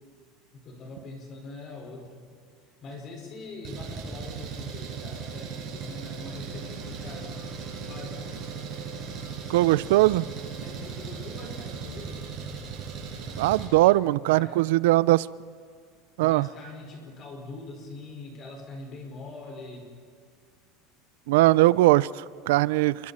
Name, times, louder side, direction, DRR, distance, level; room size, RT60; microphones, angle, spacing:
voice 1, 0.5-2.2 2.8-7.3 7.8-8.4 10.6-12.4 14.3-14.7 16.2-19.9, left 2 dB, 30° left, 1 dB, 5.0 m, -43 dB
Engine, 3.6-13.7, right 5 dB, 35° right, 6.5 m, -37 dB
voice 2, 9.5-10.3 13.4-15.3 16.2-16.5 21.3-23.1, right 17 dB, 85° right, 20 dB, 0.4 m, -20 dB
28.5 x 24.0 x 4.3 m, 2.1 s
cardioid pair, 165°, 0 cm